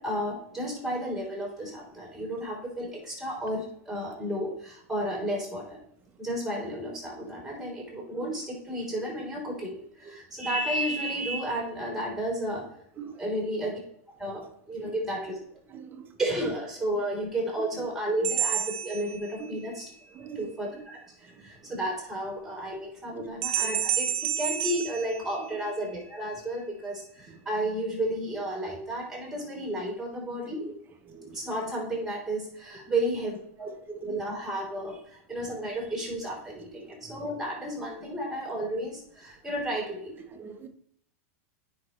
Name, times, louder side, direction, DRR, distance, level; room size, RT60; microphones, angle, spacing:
voice 1, 0.0-5.8 6.2-12.8 13.2-13.8 14.2-15.3 16.2-19.8 20.4-24.1 24.4-30.6 31.3-33.7 34.0-40.1, right 1 dB, 5° right, -1 dB, 3.4 m, -32 dB
voice 2, 9.6-10.1 13.0-13.5 14.8-14.9 15.7-16.1 19.4-19.6 20.1-20.8 21.2-21.7 23.1-23.3 23.6-23.8 24.1-24.2 27.3-27.5 30.5-30.7 31.0-31.4 32.9-33.0 33.6-34.1 36.5-36.7 37.0-37.2 40.3-40.7, right 7 dB, 25° right, 6 dB, 1.0 m, -45 dB
sound 1, 18.2-19.8 23.4-25.9, right 10 dB, 60° right, 0.8 m, -30 dB
9.7 x 5.4 x 3.2 m, 0.67 s
supercardioid pair, 125°, 8 cm